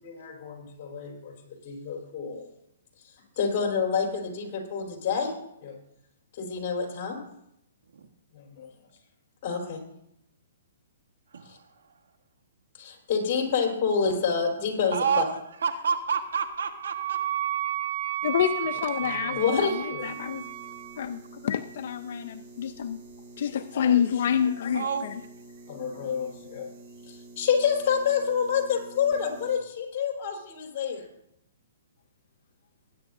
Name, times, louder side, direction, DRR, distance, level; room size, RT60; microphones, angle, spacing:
voice 1, 0.0-2.5 3.4-5.3 5.6-5.8 6.3-7.2 8.3-8.7 9.4-9.8 12.8-15.2 19.0-20.1 23.5-24.1 25.7-26.7 27.1-31.1, left 6 dB, 40° left, 0 dB, 4.0 m, -28 dB
voice 2, 11.3-11.7 14.9-17.2 24.7-25.1, right 6 dB, 80° right, 7 dB, 1.4 m, -29 dB
Wind instrument woodwind instrument, 16.2-21.0, right 13 dB, 50° right, 0.3 m, -33 dB
voice 3, 18.2-19.7 20.0-20.4 21.0-23.0 23.4-24.9, left 8 dB, 60° left, 9 dB, 0.5 m, -27 dB
sound 1, 20.0-29.6, right 2 dB, 35° right, 2.4 m, -48 dB
19.5 x 9.9 x 2.7 m, 0.78 s
hypercardioid pair, 150°, 0 cm